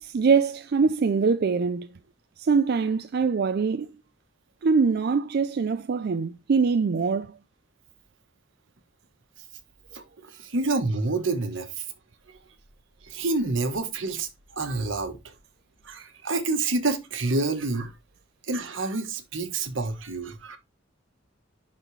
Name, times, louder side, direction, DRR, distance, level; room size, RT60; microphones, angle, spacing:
voice 1, 0.0-1.9 2.4-3.9 4.6-7.3, right 5 dB, 55° right, 0.4 m, -23 dB
voice 2, 9.9-11.8 13.1-14.3 14.6-15.2 15.8-17.9 18.5-20.6, right 3 dB, 80° right, 1.3 m, -28 dB
11.0 x 4.1 x 3.2 m
head